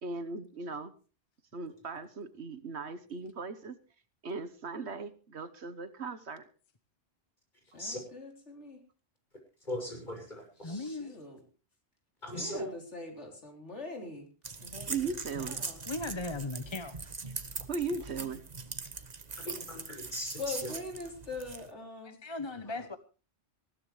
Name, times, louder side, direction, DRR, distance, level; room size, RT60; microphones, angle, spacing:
voice 1, 0.0-0.9 1.5-3.8 4.2-6.4 14.9-15.6 17.7-18.4, right 4 dB, 70° right, 12 dB, 1.5 m, -38 dB
voice 2, 7.7-8.8 10.6-11.4 12.3-14.3 14.6-15.1 15.4-15.8 18.2-18.3 20.4-22.2 22.7-22.9, left 3 dB, 80° left, 3 dB, 4.1 m, -43 dB
voice 3, 9.6-10.8 12.2-12.7 19.4-20.7, left 1 dB, 40° left, 2 dB, 6.6 m, -39 dB
voice 4, 10.6-11.2 15.9-16.9 22.0-23.0, left 2 dB, 25° left, 10 dB, 0.9 m, -37 dB
sound 1, 14.4-21.7, right 4 dB, 40° right, 1.2 m, -41 dB
20.0 x 15.5 x 3.3 m, 0.35 s
omnidirectional pair, 1.2 m